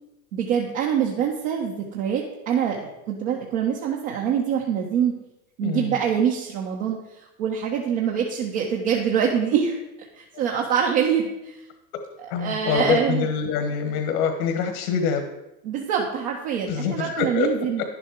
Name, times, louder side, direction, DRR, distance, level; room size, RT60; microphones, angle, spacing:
voice 1, 0.3-2.8 3.1-5.1 5.6-11.6 12.4-13.3 15.6-17.8, right 8 dB, 75° right, -1 dB, 1.5 m, -25 dB
voice 2, 5.6-5.9 12.3-15.2 16.7-17.5, left 6 dB, 75° left, 5 dB, 1.5 m, -25 dB
10.5 x 7.8 x 4.7 m, 0.94 s
hypercardioid pair, 95°, 44 cm